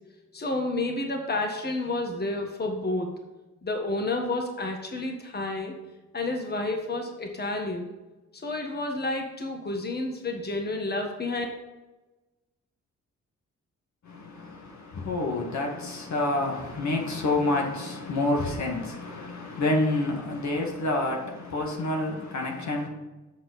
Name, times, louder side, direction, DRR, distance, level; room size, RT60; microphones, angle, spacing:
voice 1, 0.3-3.2 3.6-5.7 6.1-7.9 8.4-11.4, left 2 dB, 35° left, 3 dB, 1.5 m, -30 dB
voice 2, 14.0-22.9, left 2 dB, 70° left, 1 dB, 1.9 m, -28 dB
7.2 x 7.0 x 4.3 m, 1.1 s
cardioid pair, 70°, 29 cm